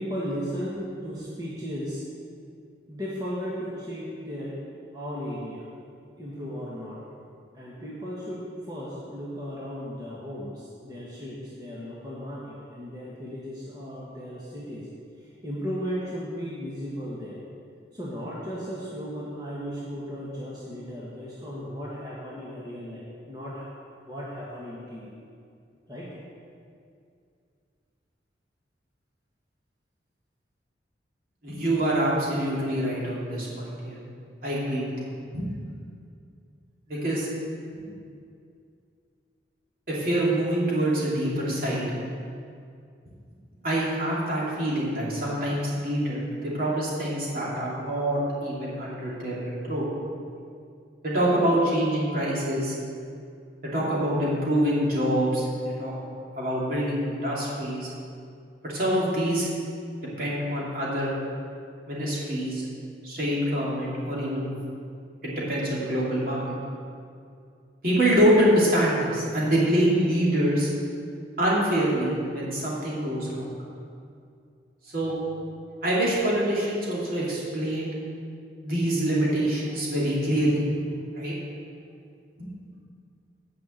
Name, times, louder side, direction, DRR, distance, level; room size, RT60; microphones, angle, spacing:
voice 1, 0.0-2.0 2.9-4.6 4.9-5.7 6.2-7.0 7.5-14.9 15.2-17.4 17.9-23.7 24.1-25.1 25.9-26.1, equal, 20° right, -7 dB, 1.4 m, -35 dB
voice 2, 31.4-34.0 34.4-34.9 35.3-35.5 36.9-37.3 39.9-41.9 43.6-49.9 51.0-52.7 53.7-55.9 56.3-57.9 58.6-59.5 60.2-61.1 61.9-62.7 63.0-64.5 65.2-66.4 67.8-70.7 71.4-73.5 74.9-75.1 75.8-78.0 78.6-80.6 81.1-81.3 82.4-82.5, right 1 dB, 55° right, -6 dB, 2.7 m, -25 dB
9.3 x 5.7 x 7.8 m, 2.4 s
head